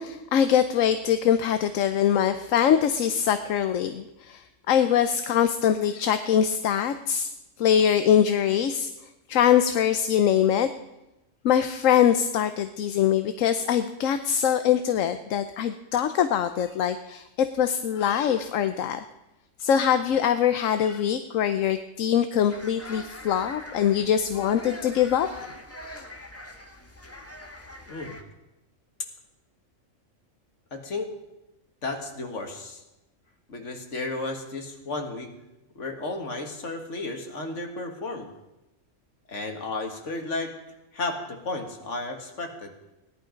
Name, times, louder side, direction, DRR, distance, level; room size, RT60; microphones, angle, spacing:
voice 1, 0.0-7.3 7.6-8.9 9.3-10.7 11.4-19.0 19.6-25.3, left 9 dB, 85° left, 10 dB, 1.1 m, -23 dB
sound 1, 22.5-28.2, left 1 dB, 10° left, 1.3 m, -42 dB
voice 2, 27.9-28.2 30.7-31.1 31.8-32.8 33.5-35.3 35.8-38.3 39.3-40.5 40.9-42.7, left 2 dB, 70° left, 4 dB, 2.1 m, -33 dB
17.5 x 11.0 x 5.2 m, 0.95 s
omnidirectional pair, 1.3 m